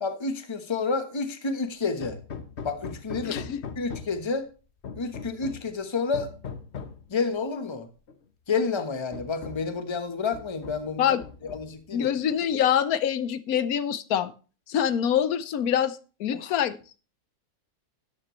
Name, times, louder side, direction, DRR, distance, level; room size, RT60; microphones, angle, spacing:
voice 1, 0.0-2.2 2.6-3.4 3.8-4.5 4.9-6.3 7.1-7.9 8.5-11.0 11.4-12.1 16.3-16.5, left 4 dB, 20° left, 1.0 m, -29 dB
Hammer, 2.0-4.3 4.8-5.7 6.1-7.0 8.1-8.2 8.6-8.7 9.1-9.8 10.3-10.9 11.2-11.9, left 6 dB, 50° left, 1.1 m, -39 dB
voice 2, 3.2-3.6 11.0-11.2 11.9-14.3 14.7-16.8, left 9 dB, 70° left, 1.2 m, -25 dB
13.0 x 9.8 x 3.1 m
omnidirectional pair, 1.6 m